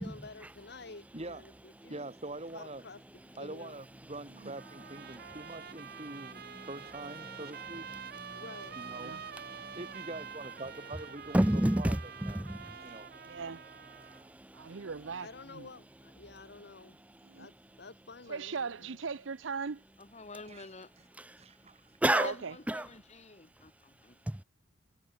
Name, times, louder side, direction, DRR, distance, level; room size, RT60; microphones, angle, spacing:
voice 1, 0.0-2.1 2.5-3.8 8.3-8.8 15.2-17.0 17.3-19.0, left 3 dB, 55° left, 1.3 m, -50 dB
voice 2, 1.1-1.6 1.9-2.8 3.4-7.9 8.8-9.1 9.8-12.5 12.8-13.1 14.2-14.3 20.5-20.7 21.4-21.9, right 2 dB, 30° right, 2.1 m, -44 dB
Trumpet, 4.6-14.2, right 7 dB, 50° right, 1.2 m, -47 dB
voice 3, 11.3-13.4 14.0-14.8 22.0-22.3 22.7-22.9 24.3-24.4, right 1 dB, 5° right, 0.4 m, -31 dB
voice 4, 13.2-13.6 14.5-15.3 15.5-15.7 17.3-17.5 18.3-19.8 22.1-22.5, right 5 dB, 65° right, 0.7 m, -38 dB
voice 5, 20.0-20.9 22.0-24.2, left 3 dB, 35° left, 1.6 m, -48 dB
head